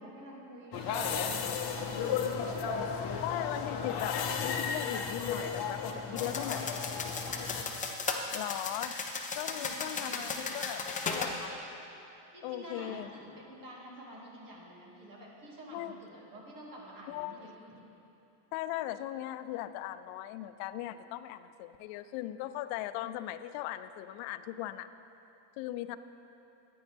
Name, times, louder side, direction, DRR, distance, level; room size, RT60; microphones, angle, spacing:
voice 1, 0.0-2.7 5.9-6.8 7.0-7.6 9.4-10.7 12.3-13.0 13.5-17.8, right 1 dB, 40° right, -4 dB, 2.3 m, -49 dB
sound 1, 0.7-7.6, left 6 dB, 45° left, 0.9 m, -34 dB
voice 2, 3.2-6.6 8.3-9.0 9.3-11.5 12.4-13.1 15.7-16.0 17.1-17.5 18.5-24.9 25.6-26.0, left 13 dB, 85° left, 12 dB, 0.6 m, -38 dB
sound 2, 6.2-11.3, left 4 dB, 15° left, 0.5 m, -36 dB
14.0 x 9.5 x 3.5 m, 2.9 s
cardioid pair, 160°, 49 cm